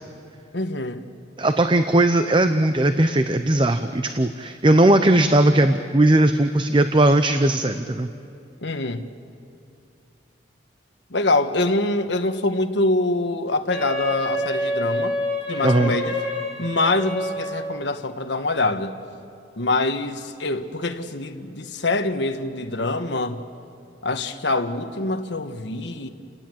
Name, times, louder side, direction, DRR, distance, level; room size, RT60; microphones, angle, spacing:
voice 1, 0.5-1.0 8.6-9.0 11.1-15.2 15.5-16.2 16.6-19.0 19.6-23.4 24.0-26.1, left 2 dB, 70° left, 7 dB, 1.3 m, -24 dB
voice 2, 1.4-8.1 15.6-15.9, right 1 dB, 25° right, 9 dB, 0.7 m, -18 dB
Wind instrument woodwind instrument, 13.7-17.8, left 1 dB, 10° right, 5.4 m, -27 dB
29.5 x 19.0 x 7.7 m, 2.5 s
head